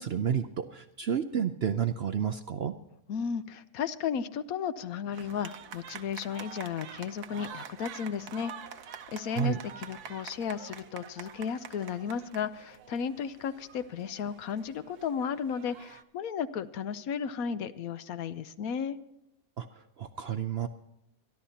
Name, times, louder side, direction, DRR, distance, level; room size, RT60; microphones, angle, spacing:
voice 1, 0.0-2.7 9.3-9.6 19.6-20.7, right 8 dB, 60° right, 9 dB, 0.7 m, -31 dB
voice 2, 3.1-8.5 9.1-19.0, left 7 dB, 70° left, 13 dB, 1.1 m, -34 dB
sound 1, 5.1-16.0, right 8 dB, 85° right, 1.4 m, -47 dB
26.0 x 11.5 x 2.8 m, 0.85 s
omnidirectional pair, 1.6 m